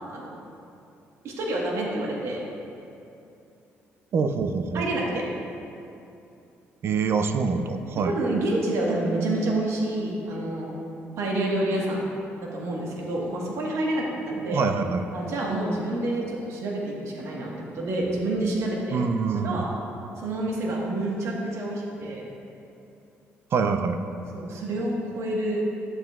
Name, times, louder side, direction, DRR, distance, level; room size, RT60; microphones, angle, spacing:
voice 1, 1.2-2.4 4.7-5.2 8.0-10.8 11.2-12.1 12.4-14.6 15.1-19.0 19.4-19.7 20.2-22.2 24.3-25.6, right 1 dB, 70° right, -2 dB, 1.4 m, -28 dB
voice 2, 4.1-4.8 6.8-8.1 14.4-15.1 18.9-19.7 23.5-24.0, right 5 dB, 55° right, 8 dB, 0.5 m, -25 dB
11.0 x 7.6 x 2.4 m, 2.7 s
cardioid pair, 90°, 5 cm